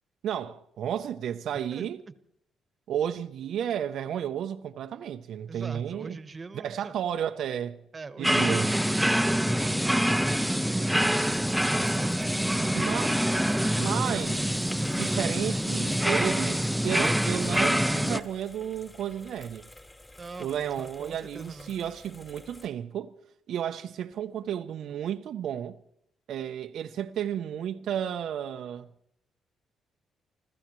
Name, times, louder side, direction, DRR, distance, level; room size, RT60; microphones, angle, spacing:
voice 1, 0.2-2.0 2.9-6.2 6.5-7.8 8.2-8.7 12.7-13.2 13.6-14.4 14.9-19.7 20.4-23.1 23.5-25.8 26.3-28.9, right 9 dB, 70° right, 0.6 m, -32 dB
voice 2, 1.5-1.9 5.5-6.9 7.9-10.1 10.7-11.3 11.7-12.9 13.7-14.2 20.2-21.7, right 4 dB, 35° right, 1.1 m, -42 dB
sound 1, 8.2-18.2, equal, 5° right, 0.6 m, -25 dB
sound 2, 11.2-22.7, left 1 dB, 25° left, 2.9 m, -51 dB
29.5 x 14.0 x 3.1 m
hypercardioid pair, 50°, 0 cm